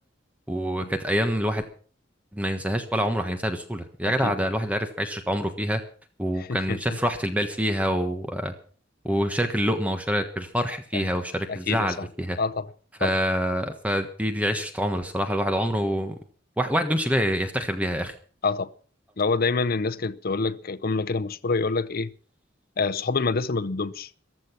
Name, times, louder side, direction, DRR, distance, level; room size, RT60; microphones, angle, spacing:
voice 1, 0.5-1.6 2.3-5.8 6.2-8.5 9.0-12.4 13.0-16.2 16.6-18.1, equal, 10° right, 1.3 m, -26 dB
voice 2, 6.4-6.8 10.9-11.1 11.5-12.1 12.4-12.7 13.0-13.1 18.4-18.7 19.2-22.1 22.8-24.1, left 4 dB, 50° left, 0.7 m, -26 dB
15.0 x 13.0 x 6.0 m
head